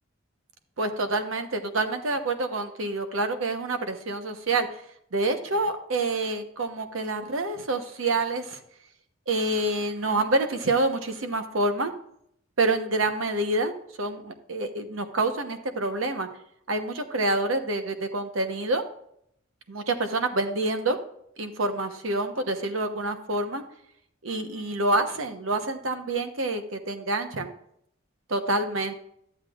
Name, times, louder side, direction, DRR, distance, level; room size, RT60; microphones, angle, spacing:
voice 1, 0.8-4.7 5.1-8.6 9.3-11.9 12.6-16.3 16.7-18.8 19.7-21.0 21.4-23.6 24.2-27.5 28.3-28.9, right 2 dB, 85° right, 7 dB, 1.0 m, -27 dB
11.5 x 8.1 x 2.4 m, 0.71 s
head